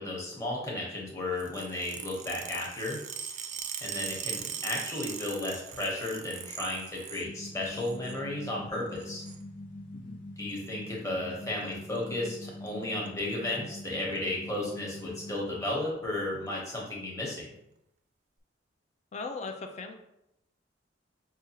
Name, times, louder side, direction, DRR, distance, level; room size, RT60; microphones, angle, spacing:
voice 1, 0.0-3.0 3.8-9.2 10.4-17.5, left 2 dB, 15° left, -4 dB, 1.0 m, -34 dB
sound 1, 1.4-7.3 7.6-8.2 8.9-9.4 10.5-10.7 11.7-12.0 12.3-12.4 12.7-12.8 13.1-13.5 14.1-14.2 15.2-15.3, right 8 dB, 40° right, 0.3 m, -40 dB
sound 2, 7.2-15.6, left 1 dB, 70° left, 1.0 m, -44 dB
voice 2, 19.1-19.9, left 3 dB, 35° left, 5 dB, 0.4 m, -38 dB
5.9 x 2.3 x 2.9 m, 0.82 s
head